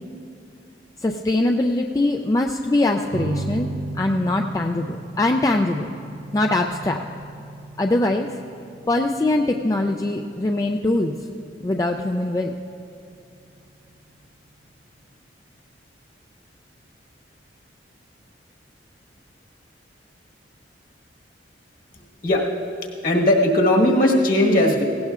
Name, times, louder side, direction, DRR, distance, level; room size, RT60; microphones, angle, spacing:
voice 1, 1.0-3.7 3.9-5.9 6.3-7.0 7.8-8.3 8.9-11.1 11.6-12.5, left 2 dB, 20° left, 3 dB, 0.3 m, -22 dB
sound 1, 3.1-14.1, right 2 dB, 45° right, 0.5 m, -36 dB
voice 2, 23.0-24.8, left 1 dB, 50° left, -1 dB, 1.5 m, -17 dB
17.5 x 17.0 x 2.4 m, 2.7 s
head